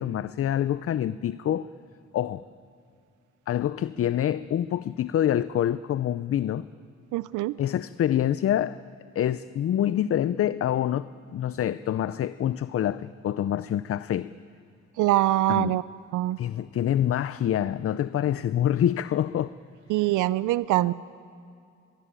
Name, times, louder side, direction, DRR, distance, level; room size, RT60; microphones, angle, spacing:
voice 1, 0.0-1.7 2.1-2.4 3.5-6.7 7.6-8.8 9.2-14.3 15.5-15.8 16.4-19.5, left 11 dB, 50° left, 0.6 m, -26 dB
voice 2, 7.1-7.6 15.0-15.8 16.1-16.4 19.9-20.9, right 16 dB, 85° right, 0.5 m, -23 dB
23.0 x 22.5 x 8.9 m
cardioid pair, 90°, 30 cm